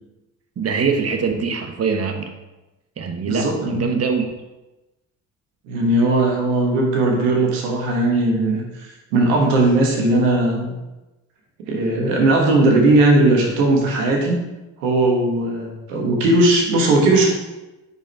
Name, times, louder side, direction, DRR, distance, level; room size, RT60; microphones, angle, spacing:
voice 1, 0.6-2.3 3.0-4.3, right 5 dB, 40° right, 4 dB, 1.1 m, -23 dB
voice 2, 3.2-4.0 5.6-10.8 11.7-14.4 14.8-17.3, right 2 dB, 85° right, 0 dB, 1.4 m, -18 dB
5.0 x 4.8 x 4.5 m, 1.0 s
hypercardioid pair, 55°, 38 cm